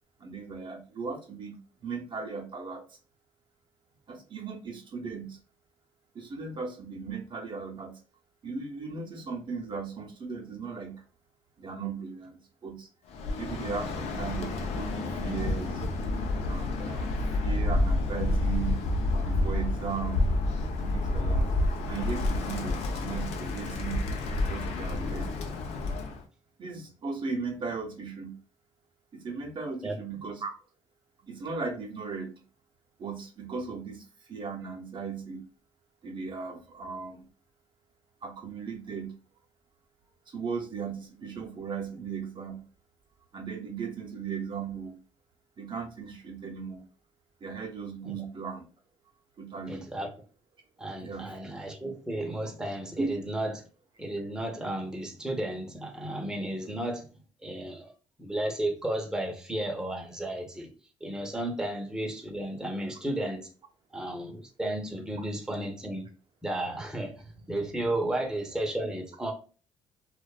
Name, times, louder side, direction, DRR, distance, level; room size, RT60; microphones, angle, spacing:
voice 1, 0.2-3.0 4.1-5.4 6.1-8.0 8.4-11.0 11.6-12.9 13.4-15.8 16.5-17.1 17.4-18.9 19.2-20.3 20.8-21.5 21.9-24.1 24.5-25.3 26.6-28.4 29.1-30.5 31.2-32.4 33.0-35.5 36.0-37.3 38.2-39.2 40.3-42.6 43.3-45.0 45.6-46.9 47.4-48.7 49.4-49.9 51.0-51.4 53.0-53.2, right 5 dB, 45° right, 0.6 m, -37 dB
Bird, 13.1-26.2, left 2 dB, 75° left, 0.5 m, -29 dB
voice 2, 49.7-50.1 50.8-53.7 54.0-57.0 57.4-57.9 58.2-60.7 61.0-63.5 63.9-66.1 66.4-69.3, right 1 dB, 5° right, 0.6 m, -33 dB
2.5 x 2.2 x 2.2 m
supercardioid pair, 70°, 11 cm